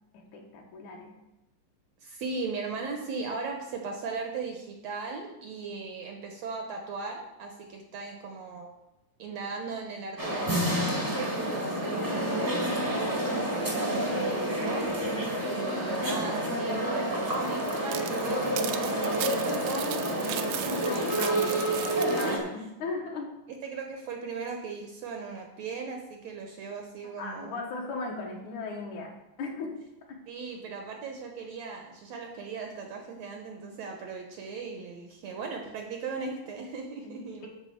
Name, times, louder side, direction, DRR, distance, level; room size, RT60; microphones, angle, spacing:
voice 1, 0.1-1.2 20.8-21.6 22.2-23.3 27.2-29.1 29.4-29.8 37.0-37.5, left 3 dB, 65° left, 0 dB, 2.6 m, -37 dB
voice 2, 2.0-8.7 9.2-15.1 15.4-20.9 21.3-21.6 22.1-22.6 23.6-27.5 30.3-37.5, right 4 dB, 70° right, 3 dB, 1.7 m, -38 dB
sound 1, 10.2-22.4, right 1 dB, 20° right, 0.6 m, -29 dB
sound 2, 17.3-22.3, right 12 dB, 85° right, 2.3 m, -38 dB
10.5 x 4.0 x 7.0 m, 0.93 s
omnidirectional pair, 3.8 m